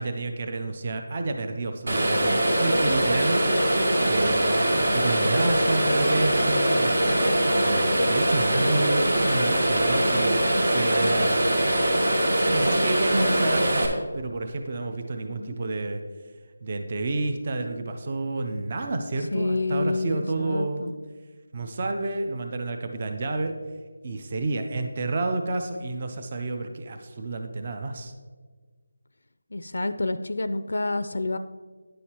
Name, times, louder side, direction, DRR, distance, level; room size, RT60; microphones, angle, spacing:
voice 1, 0.0-7.0 7.6-11.5 12.5-16.0 16.6-20.9 21.5-23.6 24.0-28.1, right 2 dB, 25° right, 5 dB, 0.4 m, -30 dB
sound 1, 1.9-13.9, right 1 dB, 65° right, 1.6 m, -22 dB
voice 2, 19.3-20.9 29.5-31.4, left 2 dB, 70° left, 11 dB, 0.4 m, -28 dB
9.8 x 6.3 x 2.9 m, 1.5 s
figure-of-eight pair, 175°, 0 cm